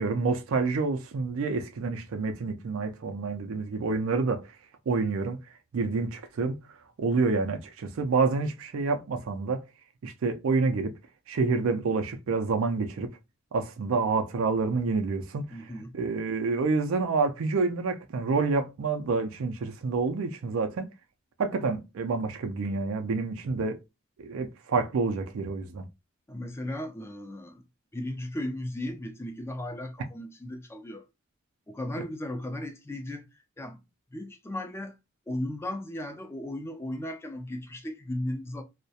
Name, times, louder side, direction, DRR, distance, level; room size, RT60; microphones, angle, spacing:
voice 1, 0.0-4.5 4.9-5.4 5.7-6.5 7.0-9.6 10.0-11.0 11.3-13.2 13.5-15.5 15.9-20.9 21.4-23.8 24.2-25.9, right 4 dB, 85° right, 0.4 m, -28 dB
voice 2, 15.5-15.9 26.3-27.6 27.9-31.0 31.7-33.3 33.6-33.8 34.1-35.0 35.3-38.6, left 1 dB, 10° left, 0.3 m, -36 dB
2.3 x 2.1 x 2.6 m
head